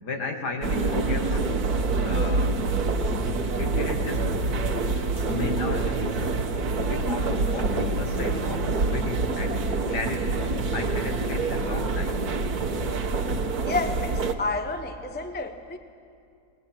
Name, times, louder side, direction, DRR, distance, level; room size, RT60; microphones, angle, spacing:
voice 1, 0.0-1.5 2.0-2.6 3.6-4.3 5.3-6.4 6.9-10.4 10.7-12.3 12.9-13.0, left 3 dB, 65° left, 3 dB, 2.3 m, -34 dB
sound 1, 0.6-14.3, right 3 dB, 60° right, 1.7 m, -26 dB
voice 2, 13.6-15.8, left 3 dB, 10° left, 7 dB, 0.6 m, -30 dB
21.0 x 20.0 x 8.9 m, 2.4 s
omnidirectional pair, 1.9 m